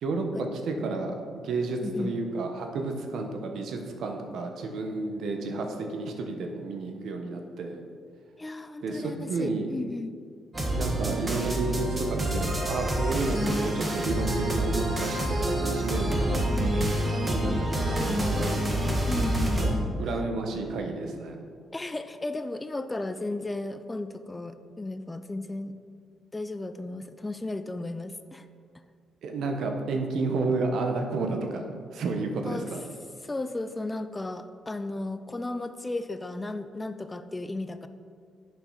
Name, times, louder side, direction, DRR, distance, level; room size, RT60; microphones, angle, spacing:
voice 1, 0.0-1.1 1.4-7.8 8.8-9.7 10.7-16.8 17.2-18.6 19.6-19.7 20.0-21.4 29.2-31.6 31.9-32.8, right 3 dB, 70° right, 4 dB, 1.1 m, -31 dB
voice 2, 8.4-10.1 17.8-18.6 19.1-20.0 21.7-25.8 26.3-28.5 32.5-32.7 33.2-37.9, left 2 dB, 15° left, 10 dB, 0.4 m, -34 dB
sound 1, 10.5-19.7, right 1 dB, 25° right, 1.4 m, -27 dB
7.1 x 5.8 x 5.7 m, 2.1 s
cardioid pair, 90°, 0 cm